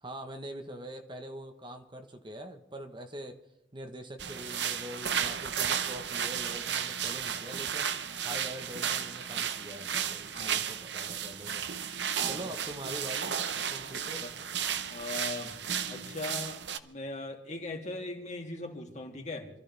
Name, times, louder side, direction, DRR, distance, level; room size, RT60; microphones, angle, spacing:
voice 1, 0.0-3.4 3.7-7.9 8.2-11.7 12.2-14.2, right 1 dB, 25° right, 5 dB, 1.2 m, -43 dB
sound 1, 4.2-16.8, right 8 dB, 70° right, 1.0 m, -34 dB
voice 2, 14.9-15.5 15.9-19.5, left 2 dB, 40° left, 1 dB, 2.9 m, -39 dB
27.5 x 14.0 x 3.5 m, 0.88 s
head